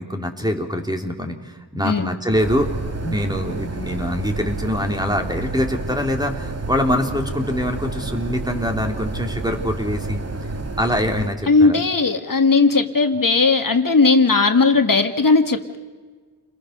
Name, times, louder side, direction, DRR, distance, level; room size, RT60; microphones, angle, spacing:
voice 1, 0.0-2.7 3.0-10.2 10.8-11.8, left 1 dB, 10° right, 3 dB, 3.4 m, -24 dB
sound 1, 2.3-11.3, right 3 dB, 35° right, 1.8 m, -30 dB
voice 2, 11.5-15.8, left 4 dB, 50° left, 5 dB, 1.7 m, -17 dB
29.5 x 21.5 x 6.7 m, 1.5 s
cardioid pair, 55°, 42 cm